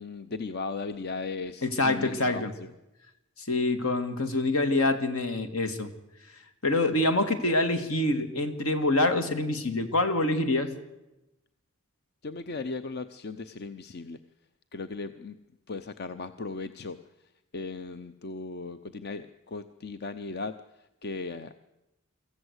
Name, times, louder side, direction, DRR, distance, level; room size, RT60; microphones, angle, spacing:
voice 1, 0.0-2.7 12.2-14.2 14.7-15.4 15.7-17.0 17.5-20.6 21.0-21.6, left 4 dB, 50° left, 10 dB, 0.6 m, -37 dB
voice 2, 1.6-2.5 3.4-5.9 6.6-10.7, left 2 dB, 75° left, 9 dB, 1.9 m, -26 dB
24.0 x 14.5 x 8.1 m, 0.97 s
head